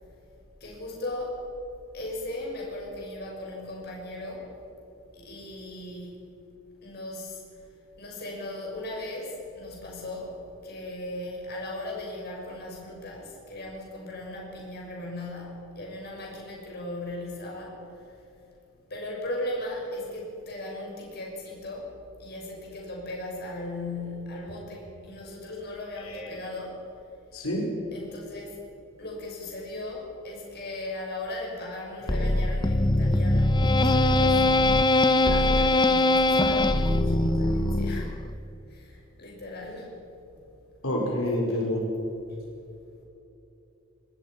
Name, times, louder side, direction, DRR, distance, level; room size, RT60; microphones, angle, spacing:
voice 1, 0.6-1.4 1.9-4.5 5.1-6.2 6.8-7.4 8.0-18.2 18.9-21.9 22.2-26.8 27.9-28.6 29.0-34.5 35.1-38.2 38.7-40.0 41.5-41.7 42.3-42.4, left 1 dB, 50° left, -1 dB, 6.1 m, -37 dB
voice 2, 27.3-27.7 40.8-41.8, left 1 dB, 90° left, -1 dB, 4.7 m, -27 dB
sound 1, 32.1-38.3, left 2 dB, 20° left, 0.8 m, -22 dB
24.5 x 19.0 x 5.9 m, 2.9 s
head